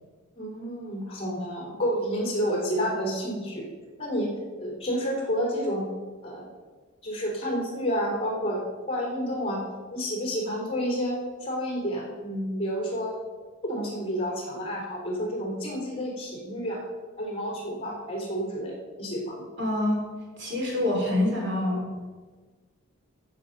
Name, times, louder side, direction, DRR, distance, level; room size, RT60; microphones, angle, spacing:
voice 1, 0.4-3.6 4.0-4.3 4.6-5.9 6.2-6.4 7.0-8.6 8.9-9.6 9.9-13.2 13.6-16.8 17.2-19.5, equal, 25° left, -1 dB, 3.5 m, -30 dB
voice 2, 19.6-20.0 20.4-21.9, left 1 dB, 55° right, -1 dB, 3.8 m, -26 dB
14.5 x 7.5 x 5.4 m, 1.4 s
head